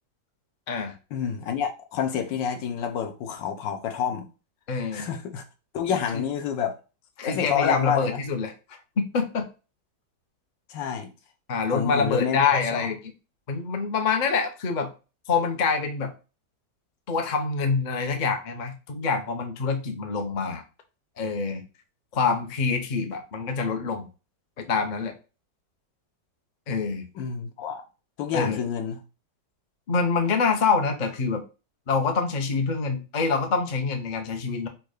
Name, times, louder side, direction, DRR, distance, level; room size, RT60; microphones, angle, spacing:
voice 1, 1.1-4.3 4.9-5.4 5.7-6.7 7.2-8.2 10.7-11.1 11.7-12.9 27.1-27.8 28.2-29.0, left 8 dB, 80° left, 1.5 m, -28 dB
voice 2, 4.7-5.1 5.9-6.2 7.2-9.5 11.5-13.0 13.5-14.9 15.3-16.1 17.1-20.6 21.2-21.6 22.1-24.1 24.6-25.1 26.7-27.1 28.3-28.6 29.9-31.4 31.9-34.7, left 5 dB, 50° left, 0.5 m, -26 dB
4.5 x 2.4 x 4.8 m
omnidirectional pair, 1.9 m